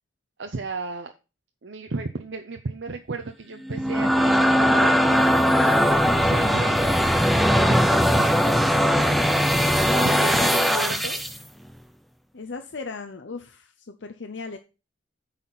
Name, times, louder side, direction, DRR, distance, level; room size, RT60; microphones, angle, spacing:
voice 1, 0.4-1.1 1.6-7.0 7.6-9.2 9.9-11.2, right 3 dB, 70° right, 5 dB, 0.7 m, -34 dB
sound 1, 3.6-11.4, equal, ahead, 0.5 m, -20 dB
voice 2, 9.8-11.1 12.3-14.6, left 4 dB, 70° left, 6 dB, 0.7 m, -36 dB
9.3 x 4.2 x 5.8 m, 0.31 s
head